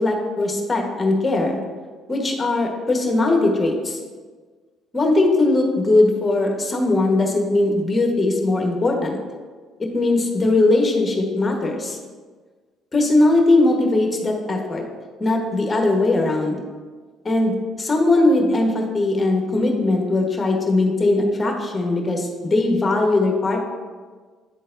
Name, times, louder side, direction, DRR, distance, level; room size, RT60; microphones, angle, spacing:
voice 1, 0.0-1.6 2.1-4.0 4.9-9.2 9.8-12.0 12.9-14.8 15.2-16.6 17.2-23.6, left 2 dB, 25° left, 2 dB, 1.2 m, -19 dB
9.6 x 3.8 x 2.6 m, 1.5 s
supercardioid pair, 70°, 0 cm